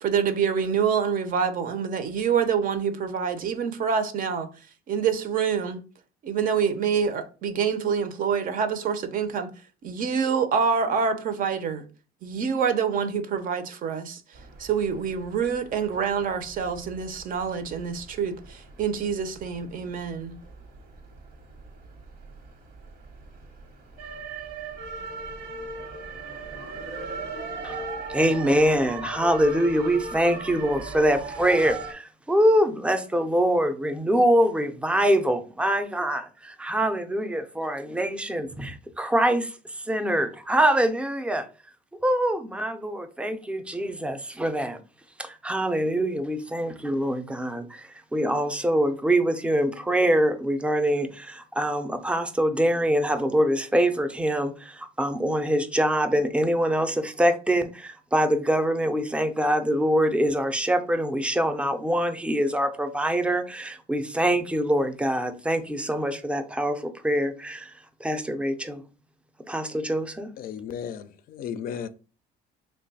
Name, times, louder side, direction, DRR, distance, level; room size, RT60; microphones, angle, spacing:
voice 1, 0.0-4.5 4.9-5.8 6.2-9.5 9.8-11.8 12.2-14.2 14.6-20.4, right 6 dB, 55° right, 0.6 m, -26 dB
sound 1, 14.3-31.9, right 3 dB, 85° right, 1.1 m, -39 dB
voice 2, 28.1-41.5 42.0-44.8 45.2-67.7 68.0-68.8 69.5-70.3, right 1 dB, 5° right, 0.4 m, -24 dB
voice 3, 70.4-71.9, left 8 dB, 60° left, 0.4 m, -34 dB
3.1 x 2.3 x 4.0 m
cardioid pair, 110°, 17 cm